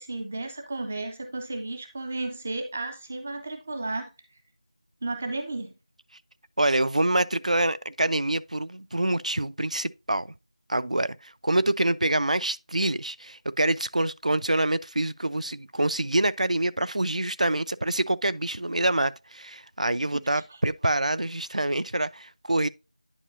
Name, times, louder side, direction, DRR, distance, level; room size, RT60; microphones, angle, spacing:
voice 1, 0.0-4.1 5.0-5.7 20.1-20.3, right 2 dB, 10° right, 0.3 m, -33 dB
voice 2, 6.6-10.3 10.7-22.7, right 1 dB, 80° right, 0.4 m, -26 dB
9.9 x 4.7 x 2.6 m
figure-of-eight pair, 170°, 4 cm